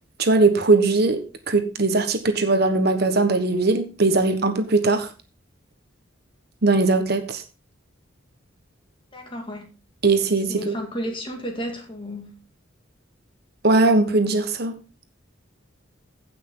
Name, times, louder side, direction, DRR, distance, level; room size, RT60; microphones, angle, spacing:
voice 1, 0.2-5.1 6.6-7.4 10.0-10.8 13.6-14.7, right 3 dB, 50° right, 1.2 m, -20 dB
voice 2, 9.1-9.7 10.5-12.3, equal, 25° left, 2.3 m, -32 dB
16.0 x 6.1 x 3.8 m
head